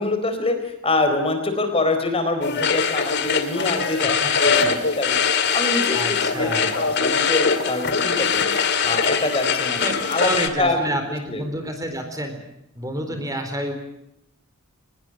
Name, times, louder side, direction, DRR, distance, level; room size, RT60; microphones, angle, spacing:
voice 1, 0.0-5.2 5.5-8.5 8.8-11.0 11.3-11.4 13.0-13.2, left 2 dB, 25° left, 7 dB, 4.1 m, -25 dB
sound 1, 2.4-10.5, left 5 dB, 50° left, 2.2 m, -22 dB
voice 2, 4.0-4.3 5.9-6.8 9.8-9.9 10.2-12.4 12.8-13.7, right 1 dB, 15° right, 6 dB, 4.0 m, -29 dB
24.0 x 21.0 x 7.6 m, 0.81 s
head